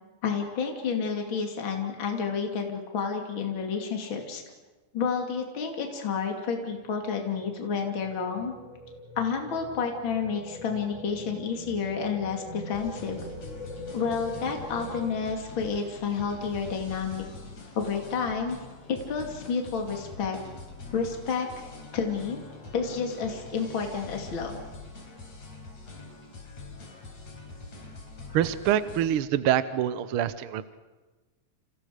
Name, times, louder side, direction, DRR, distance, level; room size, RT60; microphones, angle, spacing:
voice 1, 0.2-4.4 4.9-8.5 9.2-13.2 13.9-17.2 17.7-18.6 18.9-20.4 20.9-22.4 22.7-24.6, left 6 dB, 40° left, 2 dB, 3.2 m, -30 dB
sound 1, 6.6-15.2, equal, 15° right, 4.5 m, -43 dB
sound 2, 12.7-29.0, left 3 dB, 60° left, 5.5 m, -44 dB
voice 2, 28.3-30.8, right 10 dB, 70° right, 13 dB, 1.3 m, -26 dB
30.0 x 27.5 x 5.1 m, 1.2 s
omnidirectional pair, 3.5 m